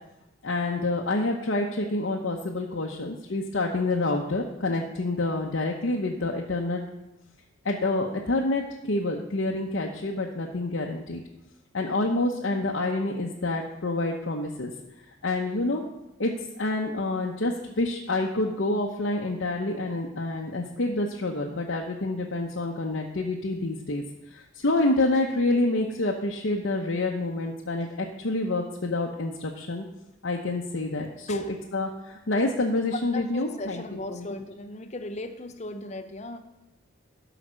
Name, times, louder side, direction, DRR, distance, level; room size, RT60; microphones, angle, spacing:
voice 1, 0.4-6.8 7.6-11.2 11.7-14.7 15.2-15.8 16.2-24.0 24.3-29.8 30.2-33.8 34.1-34.3, left 2 dB, 65° left, 0 dB, 0.8 m, -27 dB
voice 2, 32.9-36.4, left 2 dB, 35° left, 8 dB, 0.7 m, -37 dB
12.5 x 5.0 x 6.3 m, 0.94 s
head